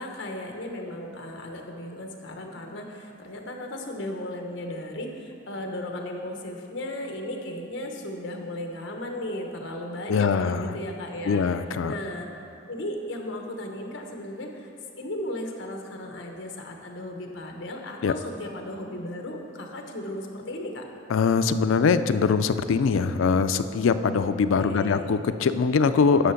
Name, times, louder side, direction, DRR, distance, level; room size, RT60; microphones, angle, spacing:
voice 1, 0.0-11.4 11.8-12.3 12.7-14.7 15.0-20.8 24.6-25.1, left 1 dB, 70° left, 2 dB, 1.1 m, -35 dB
voice 2, 10.1-10.8 11.3-11.9 18.0-18.1 21.1-26.3, left 5 dB, 85° left, 12 dB, 0.4 m, -22 dB
10.0 x 5.9 x 5.7 m, 2.6 s
head